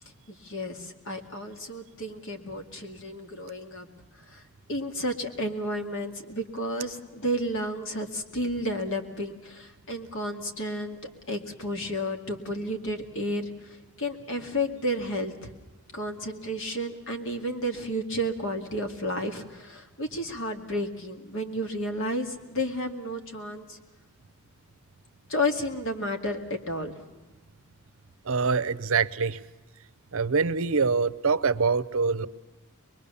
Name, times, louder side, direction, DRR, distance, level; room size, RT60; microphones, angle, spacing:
voice 1, 0.3-3.9 4.3-4.4 4.7-15.5 15.9-23.8 25.3-27.1, equal, 65° left, 5 dB, 2.3 m, -32 dB
voice 2, 28.3-29.4 30.1-32.3, right 5 dB, 65° right, 14 dB, 0.7 m, -24 dB
23.5 x 22.0 x 7.0 m, 1.2 s
head